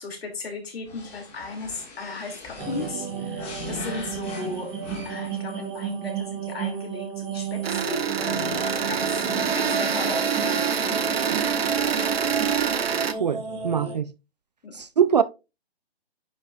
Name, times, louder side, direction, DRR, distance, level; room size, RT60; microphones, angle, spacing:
voice 1, 0.0-4.8 5.0-9.2 9.5-12.3 14.6-14.8, left 3 dB, 70° left, 3.2 m, -36 dB
sound 1, 0.8-5.4, left 3 dB, 20° left, 2.7 m, -43 dB
sound 2, 2.6-14.0, right 5 dB, 15° right, 2.5 m, -32 dB
sound 3, 7.6-13.1, right 7 dB, 70° right, 1.1 m, -26 dB
voice 2, 13.2-14.1 14.7-15.2, right 7 dB, 40° right, 0.4 m, -23 dB
9.3 x 6.0 x 2.6 m
hypercardioid pair, 150°, 32 cm